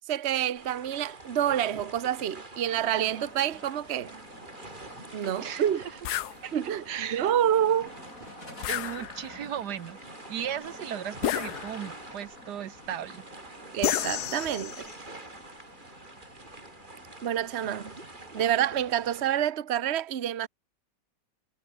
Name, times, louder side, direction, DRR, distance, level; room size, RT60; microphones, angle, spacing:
voice 1, 0.1-4.2 5.1-5.8 6.5-8.0 13.7-14.9 17.2-17.9 18.3-20.5, right 10 dB, 45° right, 1.1 m, -28 dB
sound 1, 0.5-19.3, right 2 dB, 25° right, 3.2 m, -46 dB
sound 2, 2.7-19.4, left 1 dB, 50° left, 8.4 m, -50 dB
voice 2, 5.4-6.0 6.3-6.5 6.9-7.4 8.7-10.0 10.3-13.2, right 10 dB, 75° right, 1.5 m, -36 dB
sound 3, 6.0-6.4 8.6-9.4 11.2-12.0 13.8-14.9, left 13 dB, 70° left, 1.3 m, -31 dB
omnidirectional pair, 1.8 m